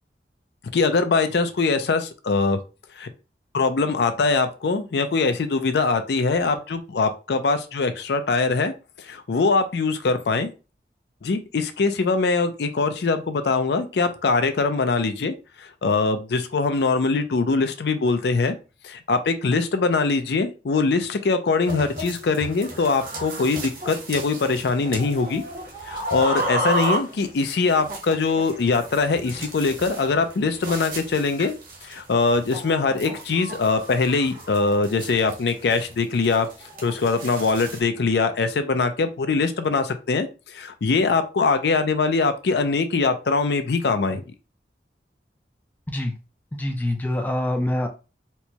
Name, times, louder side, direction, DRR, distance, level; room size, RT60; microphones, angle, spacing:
voice 1, 0.7-2.6 3.0-3.1 3.5-10.5 11.2-18.6 18.8-25.4 25.9-31.5 31.8-36.5 36.8-44.2, left 4 dB, 70° left, 8 dB, 0.4 m, -22 dB
sound 1, 21.6-37.8, right 1 dB, 50° right, 1.1 m, -33 dB
voice 2, 46.5-47.9, left 1 dB, 10° left, 3 dB, 0.4 m, -25 dB
4.4 x 2.2 x 2.8 m, 0.32 s
head